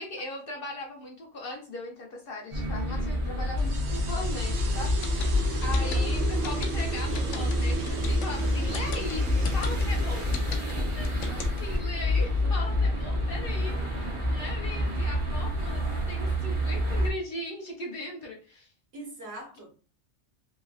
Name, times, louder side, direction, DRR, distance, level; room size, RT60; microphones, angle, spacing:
voice 1, 0.0-4.9 5.6-10.4 10.9-18.7, left 2 dB, 55° left, 0 dB, 0.8 m, -39 dB
sound 1, 2.5-17.1, left 1 dB, 30° right, 0.6 m, -28 dB
sound 2, 3.6-14.6, right 4 dB, 85° right, 1.0 m, -39 dB
sound 3, 4.9-11.8, left 6 dB, 85° left, 0.9 m, -38 dB
voice 2, 5.6-6.1 11.0-11.1 12.4-12.5 18.9-19.8, right 1 dB, 60° right, 0 dB, 1.2 m, -43 dB
3.0 x 2.6 x 2.3 m, 0.37 s
omnidirectional pair, 1.3 m